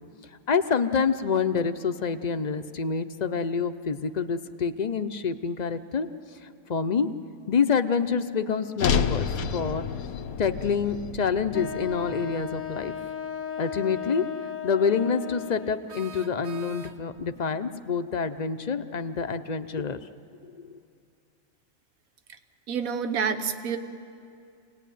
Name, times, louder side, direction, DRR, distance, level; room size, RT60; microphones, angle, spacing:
voice 1, 0.5-6.1 6.7-7.1 7.5-9.9 10.4-12.9 13.6-14.2 14.6-20.0 20.6-20.7, left 6 dB, 40° left, 9 dB, 0.7 m, -27 dB
sound 1, 8.8-13.1, left 6 dB, 90° left, 1.3 m, -30 dB
Wind instrument woodwind instrument, 11.5-16.0, left 7 dB, 70° left, 1.2 m, -35 dB
sound 2, 15.9-17.3, right 3 dB, 40° right, 0.6 m, -44 dB
voice 2, 22.7-23.8, right 6 dB, 80° right, 8 dB, 1.4 m, -28 dB
26.0 x 18.5 x 9.3 m, 2.5 s
omnidirectional pair, 1.5 m